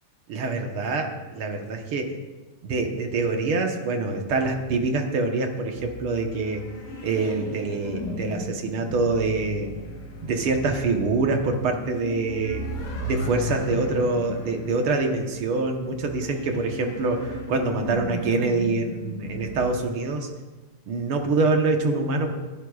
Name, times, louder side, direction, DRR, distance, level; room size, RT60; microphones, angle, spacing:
voice 1, 0.3-2.1 2.6-6.6 7.0-9.7 10.2-12.6 13.0-20.3 20.9-22.3, right 3 dB, 65° right, 3 dB, 1.4 m, -25 dB
sound 1, 5.7-19.6, equal, 80° left, 4.7 m, -36 dB
26.5 x 11.0 x 2.4 m, 1.2 s
omnidirectional pair, 3.9 m